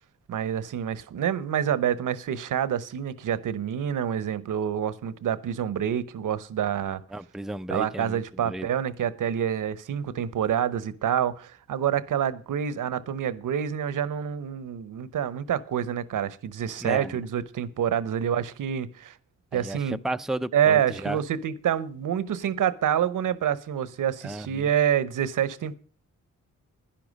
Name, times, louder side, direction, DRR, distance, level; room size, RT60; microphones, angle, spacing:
voice 1, 0.3-7.0 7.7-19.1 19.5-20.0 20.5-25.8, right 9 dB, 80° right, 1.0 m, -27 dB
voice 2, 7.1-8.7 16.8-17.2 19.5-21.2 24.2-24.7, right 1 dB, ahead, 0.5 m, -33 dB
11.5 x 10.5 x 5.2 m
cardioid pair, 65°, 31 cm